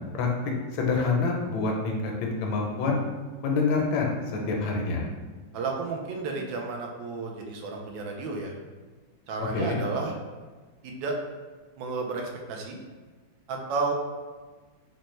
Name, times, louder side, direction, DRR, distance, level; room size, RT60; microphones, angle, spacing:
voice 1, 0.7-3.0 3.4-5.1 9.5-9.8, left 4 dB, 85° left, 0 dB, 1.4 m, -26 dB
voice 2, 5.5-8.5 9.3-10.1 10.8-11.2 11.8-12.8 13.5-13.9, right 4 dB, 80° right, 1 dB, 1.3 m, -32 dB
4.0 x 2.1 x 3.1 m, 1.4 s
omnidirectional pair, 2.1 m